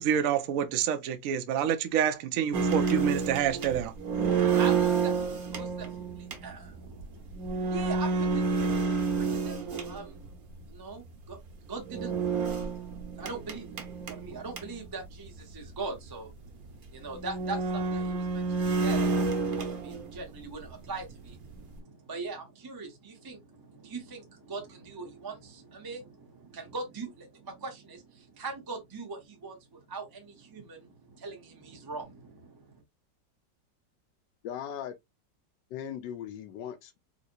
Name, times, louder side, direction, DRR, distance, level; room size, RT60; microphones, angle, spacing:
voice 1, 0.0-3.9, right 9 dB, 70° right, 0.8 m, -27 dB
sound 1, 2.5-10.3 11.8-14.9 15.3-15.4 15.6-15.7 16.5-16.6 17.1-20.4 20.6-21.8, right 4 dB, 55° right, 1.4 m, -29 dB
voice 2, 4.3-10.2 10.7-11.4 11.7-12.2 12.6-12.7 13.1-13.7 14.0-32.8, right 3 dB, 20° right, 0.6 m, -41 dB
voice 3, 34.4-35.0 35.7-37.0, left 9 dB, 75° left, 1.2 m, -38 dB
4.0 x 2.9 x 2.6 m
omnidirectional pair, 2.0 m